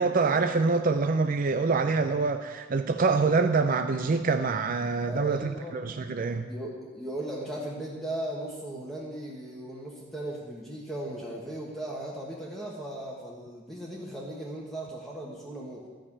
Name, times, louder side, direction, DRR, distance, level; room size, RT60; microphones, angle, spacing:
voice 1, 0.0-6.5, right 4 dB, 45° right, 7 dB, 0.5 m, -25 dB
voice 2, 5.1-5.7 6.5-15.9, right 1 dB, ahead, -5 dB, 1.4 m, -37 dB
13.0 x 6.5 x 8.7 m, 1.4 s
head